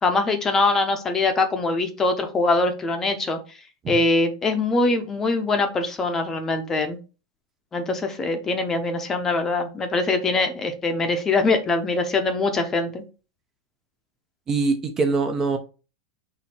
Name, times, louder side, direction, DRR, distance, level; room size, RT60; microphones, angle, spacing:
voice 1, 0.0-3.4 3.9-7.0 7.7-13.0, left 3 dB, 15° left, 0.7 m, -23 dB
voice 2, 14.5-15.6, right 4 dB, 20° right, 0.5 m, -23 dB
4.2 x 2.7 x 4.3 m
supercardioid pair, 150°, 2 cm